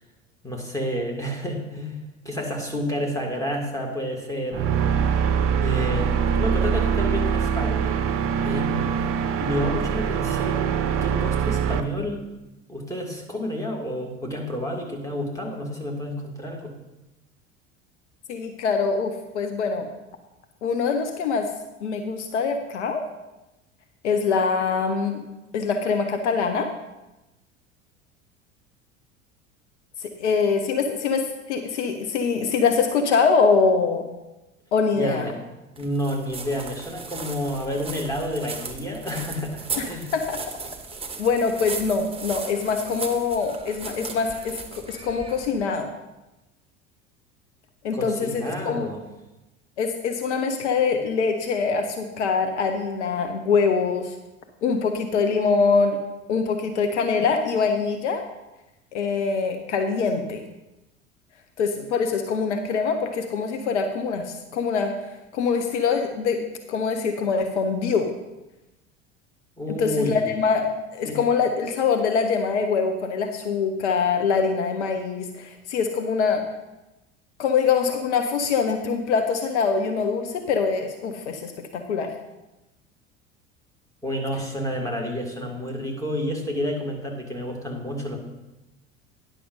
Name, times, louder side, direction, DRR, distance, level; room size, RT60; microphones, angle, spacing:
voice 1, 0.4-4.7 5.6-8.0 8.4-9.0 9.4-12.3 12.7-16.7 35.0-35.4 35.8-40.1 47.9-49.0 69.6-70.3 71.0-71.2 84.0-88.2, equal, 10° left, 0 dB, 2.2 m, -30 dB
sound 1, 4.5-11.8, right 7 dB, 35° right, 0.7 m, -23 dB
voice 2, 18.3-19.9 20.6-21.5 21.8-23.0 24.0-25.2 25.5-26.7 30.0-34.1 34.7-35.3 39.8-39.9 40.1-40.6 41.2-45.9 47.8-48.9 49.8-54.1 54.6-56.0 56.3-58.2 58.9-60.4 61.6-65.0 65.3-66.4 66.7-68.1 69.8-76.4 77.4-82.1, left 5 dB, 65° left, 6 dB, 1.0 m, -24 dB
sound 2, 35.8-45.7, right 4 dB, 15° right, 1.1 m, -37 dB
10.0 x 6.0 x 5.4 m, 1.0 s
figure-of-eight pair, 70°, 37 cm